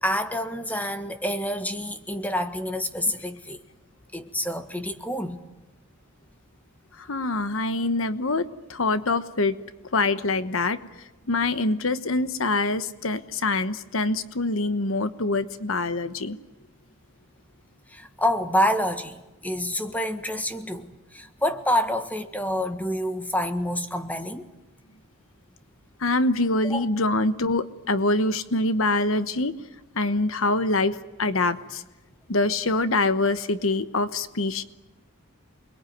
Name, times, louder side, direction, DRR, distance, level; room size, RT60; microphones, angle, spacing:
voice 1, 0.0-3.6 4.1-5.4 17.9-24.5 26.6-26.8, equal, 10° left, 1.6 m, -27 dB
voice 2, 7.0-8.4 8.7-9.5 9.9-10.8 11.3-16.4 26.0-29.5 29.9-31.8 32.3-34.6, left 2 dB, 75° left, 1.2 m, -24 dB
28.5 x 21.5 x 9.3 m
head